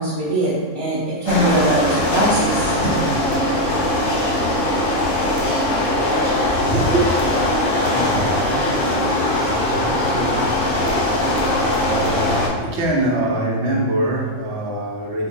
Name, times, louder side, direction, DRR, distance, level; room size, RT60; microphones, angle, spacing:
voice 1, 0.0-3.0, right 1 dB, 30° right, -11 dB, 0.7 m, -21 dB
sound 1, 1.3-12.5, left 1 dB, 85° left, 1.2 m, -20 dB
voice 2, 5.9-8.7 9.4-15.3, right 1 dB, 65° right, -2 dB, 0.9 m, -25 dB
4.5 x 2.2 x 2.7 m, 1.5 s
omnidirectional pair, 1.3 m